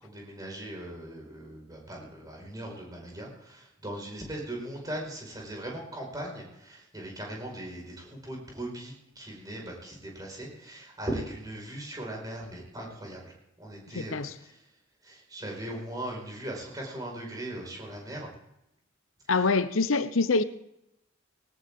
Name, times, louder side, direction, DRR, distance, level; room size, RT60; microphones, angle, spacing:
voice 1, 0.0-14.6 15.0-18.3 19.3-19.5, right 1 dB, 20° right, -1 dB, 5.1 m, -39 dB
voice 2, 13.9-14.3 19.3-20.4, left 3 dB, 85° left, 13 dB, 0.9 m, -25 dB
19.0 x 18.0 x 3.7 m, 0.83 s
head